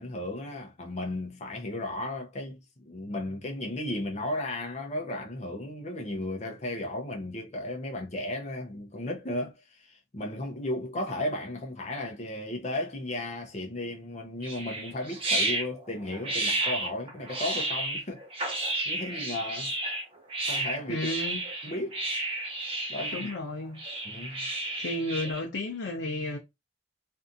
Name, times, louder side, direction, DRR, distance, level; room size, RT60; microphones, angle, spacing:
voice 1, 0.0-18.2 18.9-19.7 20.5-21.1 21.6-22.0 22.9-23.3 24.0-24.5, left 1 dB, 40° left, 0.6 m, -35 dB
sound 1, 14.4-25.4, right 2 dB, 30° right, 0.7 m, -32 dB
voice 2, 20.9-21.4 23.1-23.8 24.8-26.4, left 1 dB, 90° left, 0.6 m, -32 dB
2.6 x 2.4 x 2.6 m
head